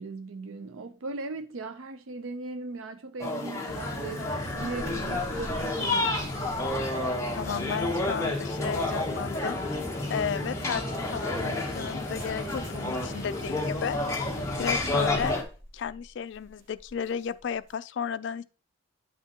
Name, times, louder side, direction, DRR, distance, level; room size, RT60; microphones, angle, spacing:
voice 1, 0.0-6.2, right 3 dB, 85° right, 0.5 m, -38 dB
sound 1, 3.2-15.4, left 2 dB, 15° left, 0.9 m, -31 dB
sound 2, 3.7-15.3, left 1 dB, 40° left, 1.5 m, -38 dB
sound 3, 4.5-9.7 10.1-17.7, equal, 65° right, 2.0 m, -48 dB
voice 2, 7.3-9.6 10.1-14.0 14.6-15.4 15.7-18.4, left 7 dB, 60° left, 0.3 m, -33 dB
8.9 x 5.9 x 2.8 m
head